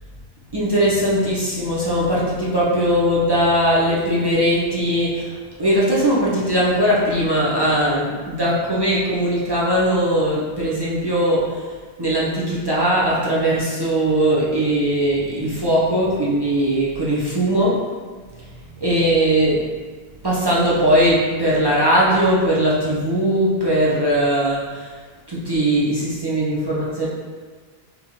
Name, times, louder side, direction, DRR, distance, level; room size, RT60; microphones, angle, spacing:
voice 1, 0.5-5.3 5.6-11.7 12.0-17.8 18.4-18.5 18.8-19.6 20.2-25.0 25.3-27.1, right 1 dB, 30° right, -7 dB, 0.5 m, -19 dB
3.8 x 2.9 x 2.8 m, 1.5 s
omnidirectional pair, 1.1 m